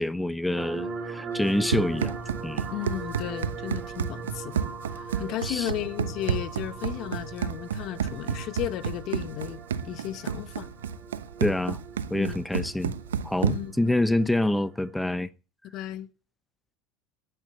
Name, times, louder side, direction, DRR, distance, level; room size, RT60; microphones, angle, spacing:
voice 1, 0.0-2.2 2.4-2.7 5.4-5.7 11.4-11.8 12.1-12.9 13.2-15.3, left 1 dB, 5° left, 1.1 m, -26 dB
sound 1, 0.6-15.1, right 5 dB, 35° right, 3.4 m, -41 dB
Run, 1.4-13.8, right 7 dB, 90° right, 1.0 m, -31 dB
voice 2, 2.7-4.7 5.0-10.7 12.1-12.4 13.5-13.7 15.7-16.1, left 13 dB, 55° left, 2.0 m, -34 dB
18.0 x 9.1 x 8.2 m
hypercardioid pair, 80°, 0 cm